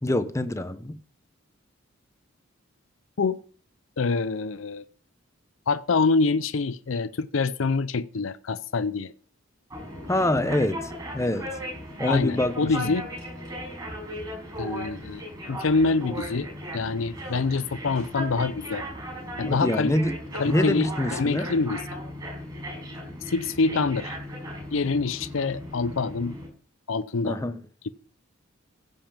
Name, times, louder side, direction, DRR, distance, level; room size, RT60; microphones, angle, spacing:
voice 1, 0.0-1.0 10.1-11.5 12.0-12.9 19.4-20.2 20.5-21.5 27.2-27.6, left 1 dB, 15° left, 0.8 m, -25 dB
voice 2, 4.0-4.8 5.7-9.1 12.1-13.1 14.6-15.2 15.5-16.5 16.7-18.8 19.4-19.9 20.4-21.8 23.3-24.2 24.7-26.4 26.9-27.4 27.8-27.9, left 4 dB, 75° left, 0.6 m, -25 dB
sound 1, 9.7-26.5, equal, 20° right, 5.7 m, -37 dB
15.5 x 5.4 x 7.4 m
head